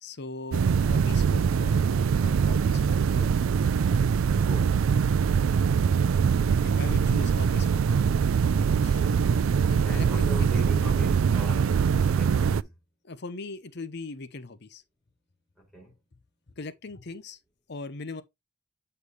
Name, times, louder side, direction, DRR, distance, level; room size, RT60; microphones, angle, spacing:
voice 1, 0.0-1.8 2.2-3.3 6.5-8.1 8.8-9.0 9.7-10.5 13.0-14.8 16.6-17.4 17.7-18.2, left 3 dB, 55° left, 0.8 m, -40 dB
sound 1, 0.5-12.6, right 6 dB, 85° right, 0.4 m, -23 dB
voice 2, 4.4-4.8 8.8-9.2 9.8-12.7 15.6-15.9, equal, ahead, 4.4 m, -42 dB
8.3 x 4.5 x 3.4 m
head